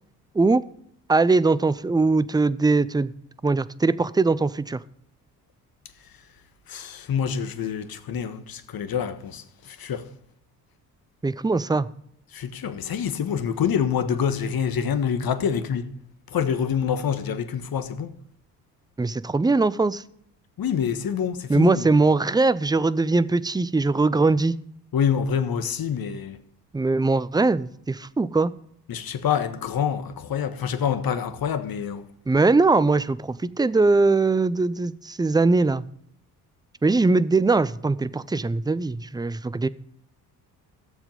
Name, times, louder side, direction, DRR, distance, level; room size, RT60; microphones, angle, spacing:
voice 1, 1.1-3.1 3.4-4.8 11.2-11.9 19.0-20.0 21.5-24.5 26.7-28.5 32.3-35.9 36.8-39.7, right 3 dB, 10° right, 0.6 m, -21 dB
voice 2, 6.7-10.1 12.3-15.9 16.3-18.1 20.6-22.0 24.9-26.4 28.9-32.0, left 7 dB, 50° left, 1.5 m, -26 dB
16.5 x 7.3 x 5.4 m
hypercardioid pair, 50°, 48 cm